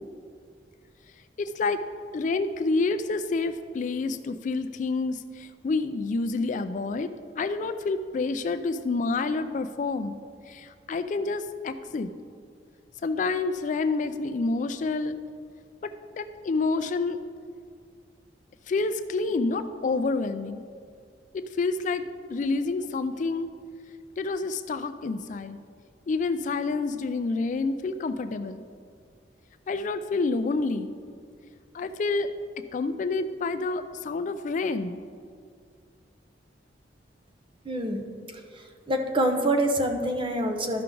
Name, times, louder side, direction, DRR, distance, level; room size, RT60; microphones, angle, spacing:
voice 1, 1.4-1.8 2.1-10.2 10.5-12.1 13.0-15.2 15.8-17.2 18.7-20.6 21.3-22.0 22.3-23.5 24.2-25.6 26.1-28.6 29.7-30.9 31.7-32.3 32.7-35.0, left 3 dB, 45° left, 11 dB, 0.3 m, -28 dB
voice 2, 37.7-38.0 38.9-40.8, right 1 dB, 30° right, 3 dB, 0.8 m, -25 dB
12.5 x 5.7 x 3.8 m, 2.2 s
head